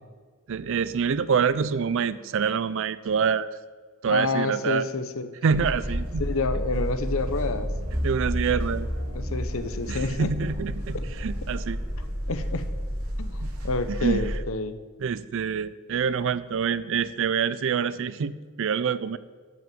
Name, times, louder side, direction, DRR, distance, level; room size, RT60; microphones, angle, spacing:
voice 1, 0.5-3.5 4.0-4.9 5.4-6.3 8.0-8.9 9.9-11.8 13.4-13.5 13.9-14.3 15.0-19.2, right 6 dB, 60° right, 15 dB, 0.4 m, -26 dB
voice 2, 4.1-5.3 5.6-5.7 6.2-7.7 9.1-10.5 10.9-11.1 12.3-12.7 13.2-14.8, left 3 dB, 65° left, 11 dB, 0.8 m, -29 dB
sound 1, 5.5-14.4, equal, 85° right, 3.0 m, -30 dB
12.0 x 6.1 x 7.7 m, 1.5 s
head